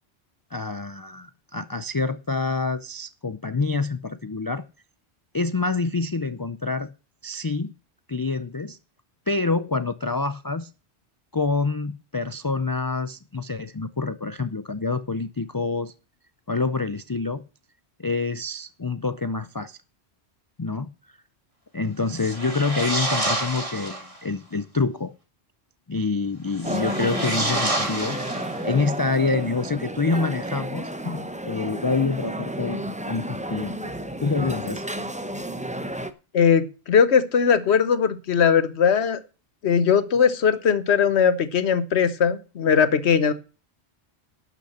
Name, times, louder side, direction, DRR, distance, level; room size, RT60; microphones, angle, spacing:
voice 1, 0.5-4.6 5.3-6.9 7.2-7.7 8.1-8.8 9.3-10.7 11.3-15.9 16.5-17.4 18.0-19.8 20.6-20.9 21.7-25.1 25.9-28.2 28.6-33.9 34.2-34.8, left 3 dB, 35° left, 0.4 m, -27 dB
sound 1, 22.1-24.2 26.5-28.9, right 1 dB, 30° right, 2.0 m, -28 dB
sound 2, 26.6-36.1, right 1 dB, 10° right, 0.7 m, -32 dB
voice 2, 36.3-39.2 39.6-43.3, left 7 dB, 80° left, 1.3 m, -19 dB
12.0 x 5.9 x 7.2 m
omnidirectional pair, 1.1 m